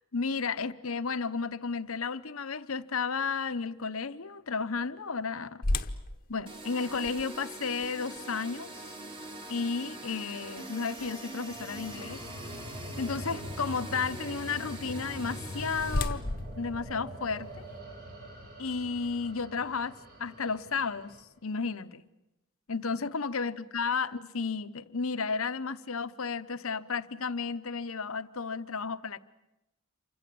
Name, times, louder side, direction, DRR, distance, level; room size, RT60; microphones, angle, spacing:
voice 1, 0.1-5.6 6.3-8.9 9.5-12.2 13.0-16.2 16.6-17.7 18.6-19.9 20.2-21.2 21.4-22.0 22.7-29.2, left 5 dB, 90° left, 1.0 m, -33 dB
sound 1, 5.6-11.6 12.1-12.2 12.8-13.1 15.1-17.8, left 2 dB, 45° left, 1.1 m, -37 dB
sound 2, 6.5-16.1, right 2 dB, 25° right, 3.6 m, -43 dB
sound 3, 11.5-21.2, left 1 dB, 50° right, 6.0 m, -43 dB
28.0 x 25.0 x 7.7 m
head